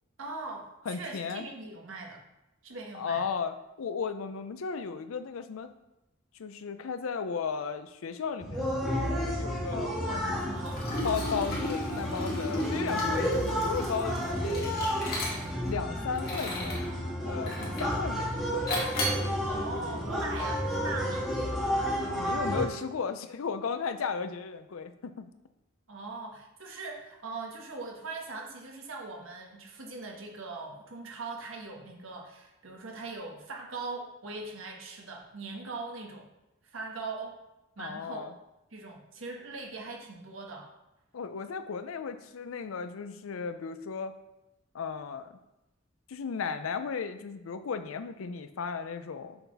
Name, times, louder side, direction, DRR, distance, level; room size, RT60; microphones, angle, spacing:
voice 1, 0.2-2.2 2.6-3.2 9.7-10.9 19.5-21.3 25.9-36.3 36.7-37.4 37.8-38.3 38.7-40.7, right 3 dB, 75° right, 0 dB, 1.3 m, -40 dB
voice 2, 0.9-1.5 2.9-5.7 6.4-9.9 11.0-14.8 15.7-16.9 17.2-18.8 22.1-25.3 37.8-38.3 41.1-44.1 44.7-45.3 46.1-49.4, left 5 dB, 90° left, 10 dB, 0.5 m, -35 dB
sound 1, 8.4-22.7, equal, ahead, 1.6 m, -31 dB
Liquid, 10.7-15.7 16.1-16.9 17.5-18.0 18.7-19.3, left 1 dB, 50° left, 1.8 m, -35 dB
6.7 x 4.0 x 4.0 m, 0.94 s
head